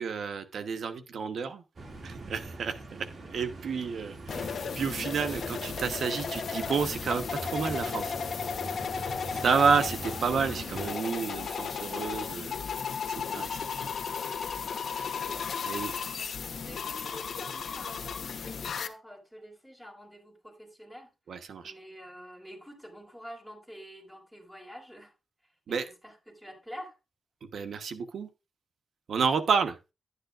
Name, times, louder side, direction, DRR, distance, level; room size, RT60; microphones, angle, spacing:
voice 1, 0.0-1.6 2.0-8.2 9.0-9.1 9.4-12.5 13.1-13.9 15.6-15.9 21.3-21.7 25.7-25.9 27.5-28.3 29.1-29.8, right 5 dB, 80° right, 1.2 m, -30 dB
sound 1, 1.8-11.0, right 2 dB, 60° right, 2.4 m, -42 dB
sound 2, 4.3-18.9, left 6 dB, 75° left, 1.0 m, -35 dB
voice 2, 14.1-15.1 16.2-16.3 16.5-21.1 21.6-25.1 25.7-26.9, equal, 5° right, 5.1 m, -48 dB
11.5 x 9.7 x 2.5 m
cardioid pair, 70°, 0 cm